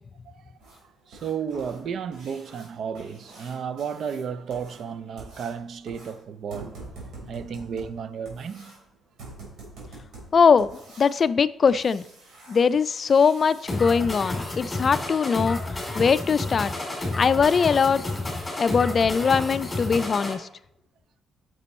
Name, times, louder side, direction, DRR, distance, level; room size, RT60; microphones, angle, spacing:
sound 1, 0.6-13.8 16.1-16.2 16.7-16.8 17.2-17.3 17.8-17.9 18.3-18.5 18.9-19.0 19.4-19.5, right 2 dB, 80° right, 3.8 m, -46 dB
voice 1, 1.1-6.8 7.3-8.8, right 7 dB, 65° right, 0.5 m, -33 dB
voice 2, 10.3-10.7 11.0-12.1 12.5-15.6 15.9-16.7 17.2-18.0 18.6-20.5, left 6 dB, 45° left, 0.3 m, -21 dB
sound 2, 13.7-20.3, left 2 dB, 15° left, 2.7 m, -31 dB
9.7 x 6.1 x 4.2 m
cardioid pair, 90°, 0 cm